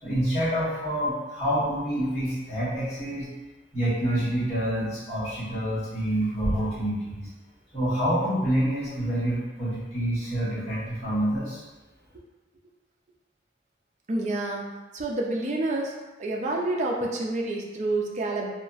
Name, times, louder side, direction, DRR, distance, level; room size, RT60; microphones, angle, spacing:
voice 1, 0.0-3.3 3.7-7.3 7.7-11.6, equal, 35° left, -12 dB, 1.4 m, -27 dB
voice 2, 14.1-14.7 14.9-15.9 16.2-18.5, right 2 dB, 40° right, -1 dB, 0.4 m, -28 dB
2.8 x 2.4 x 2.4 m, 1.1 s
head